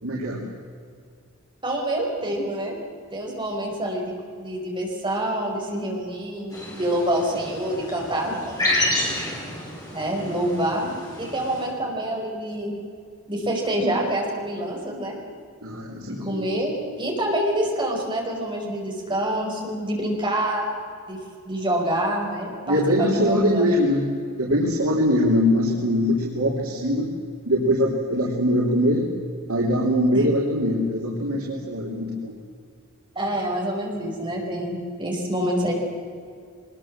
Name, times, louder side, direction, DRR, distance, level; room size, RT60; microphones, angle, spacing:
voice 1, 0.0-0.5 15.6-16.5 22.7-24.1 24.4-27.1 27.4-29.1 29.5-32.3, equal, 85° right, -3 dB, 3.4 m, -22 dB
voice 2, 1.6-2.8 3.1-9.3 9.9-10.9 11.2-12.7 13.3-15.2 16.2-20.7 21.1-21.2 21.4-23.9 30.1-30.2 33.1-35.7, right 1 dB, 20° right, -1 dB, 5.1 m, -27 dB
sound 1, 6.5-11.7, left 1 dB, 15° left, 5.6 m, -29 dB
23.5 x 21.0 x 7.5 m, 2.2 s
head